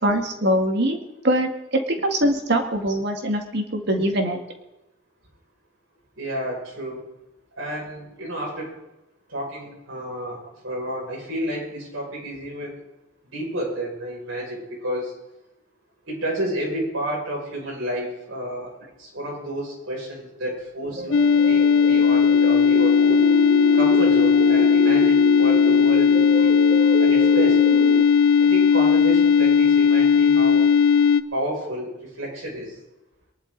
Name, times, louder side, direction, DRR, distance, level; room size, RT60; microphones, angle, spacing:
voice 1, 0.0-4.4, right 1 dB, 55° right, 4 dB, 2.0 m, -23 dB
voice 2, 6.2-7.0 7.6-8.7 9.3-12.8 13.3-15.1 16.1-18.7 19.0-23.3 23.7-26.6 27.0-27.6 28.4-30.7 31.3-32.8, right 1 dB, 85° right, -3 dB, 6.5 m, -30 dB
sound 1, 20.8-28.0, right 2 dB, 35° right, 0.6 m, -28 dB
sound 2, 21.1-31.2, left 6 dB, 75° left, 0.6 m, -17 dB
23.0 x 11.5 x 4.0 m, 0.94 s
head